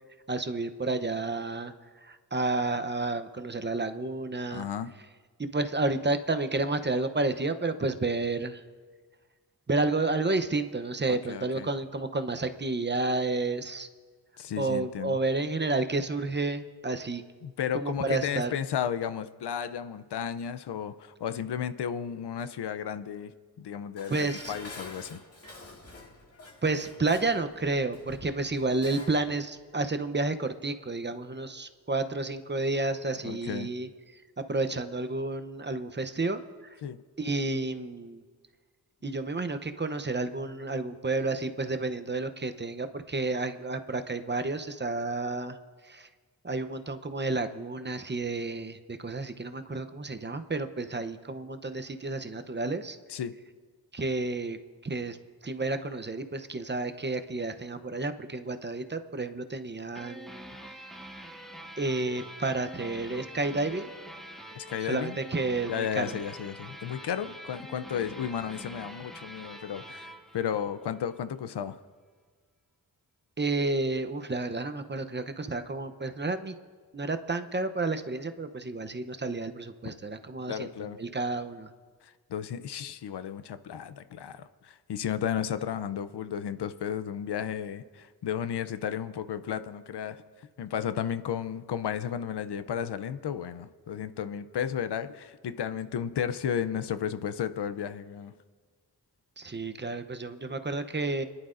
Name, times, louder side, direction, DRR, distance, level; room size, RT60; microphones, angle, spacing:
voice 1, 0.3-1.7 2.0-4.7 5.4-8.6 9.7-13.9 14.6-17.2 17.7-18.5 24.1-24.5 26.6-33.9 34.4-36.7 37.2-38.2 39.0-45.6 45.8-46.1 46.4-53.0 53.9-54.6 54.8-55.2 55.4-60.6 61.8-63.9 64.9-66.2 73.4-76.5 76.9-81.7 99.4-101.2, right 3 dB, 25° right, 8 dB, 0.7 m, -31 dB
voice 2, 4.5-4.9 11.0-11.7 14.4-15.2 17.4-25.2 33.2-33.7 36.8-37.0 53.1-53.3 64.5-65.2 65.7-71.8 80.5-81.0 82.0-90.2 90.6-98.3, left 8 dB, 80° left, 12 dB, 0.6 m, -33 dB
Dishes pots and pans, 24.0-29.2 29.6-29.7, left 2 dB, 35° left, 2.1 m, -47 dB
sound 1, 59.9-71.2, equal, ahead, 1.6 m, -45 dB
27.0 x 11.0 x 2.6 m, 1.5 s
cardioid pair, 55°, 39 cm